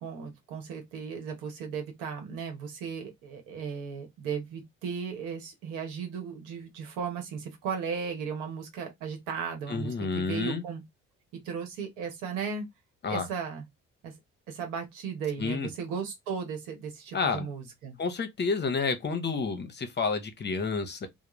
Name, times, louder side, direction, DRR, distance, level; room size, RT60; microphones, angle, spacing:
voice 1, 0.0-10.8 11.4-12.7 13.1-13.6 14.0-14.1 14.5-18.0, right 6 dB, 85° right, 0.9 m, -36 dB
voice 2, 9.7-10.6 13.0-13.3 15.4-15.7 17.1-17.5 18.0-21.1, left 4 dB, 35° left, 0.7 m, -30 dB
2.3 x 2.0 x 3.1 m
supercardioid pair, 65°, 30 cm